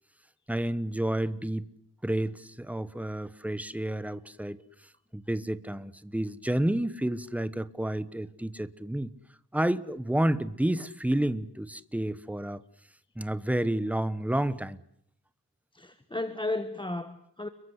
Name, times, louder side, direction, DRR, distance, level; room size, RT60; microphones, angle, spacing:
voice 1, 0.5-1.6 2.0-4.6 5.1-9.1 9.5-12.6 13.1-14.8, right 1 dB, 5° right, 14 dB, 1.1 m, -30 dB
voice 2, 15.7-17.5, left 2 dB, 10° left, 10 dB, 1.3 m, -34 dB
30.0 x 22.5 x 8.1 m, 0.70 s
wide cardioid pair, 145°, 38 cm